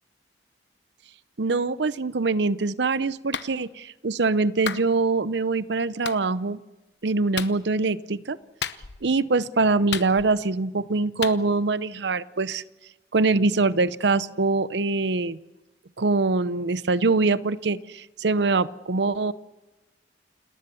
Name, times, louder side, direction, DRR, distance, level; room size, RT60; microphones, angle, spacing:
voice 1, 1.4-6.6 7.0-8.4 9.0-12.6 13.1-15.4 16.0-19.3, right 3 dB, 75° right, 16 dB, 0.7 m, -23 dB
Clapping, 3.3-3.5 4.6-4.9 6.0-6.2 7.3-7.6 8.6-9.1 9.9-10.5 11.2-11.4, left 8 dB, 75° left, 0.9 m, -32 dB
29.0 x 18.5 x 7.0 m, 1.1 s
head